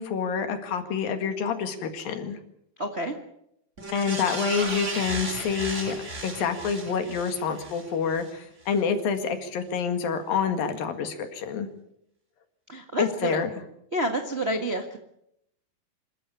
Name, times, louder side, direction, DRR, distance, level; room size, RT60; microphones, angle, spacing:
voice 1, 0.0-2.4 3.9-6.0 6.2-11.7 13.0-13.5, left 6 dB, 75° left, 7 dB, 3.7 m, -27 dB
voice 2, 2.8-3.2 12.7-13.4 13.9-15.0, right 1 dB, 65° right, 4 dB, 0.6 m, -28 dB
sound 1, 3.8-8.3 8.7-8.8, right 2 dB, 20° right, 2.5 m, -35 dB
26.5 x 13.5 x 8.6 m, 0.77 s
omnidirectional pair, 4.2 m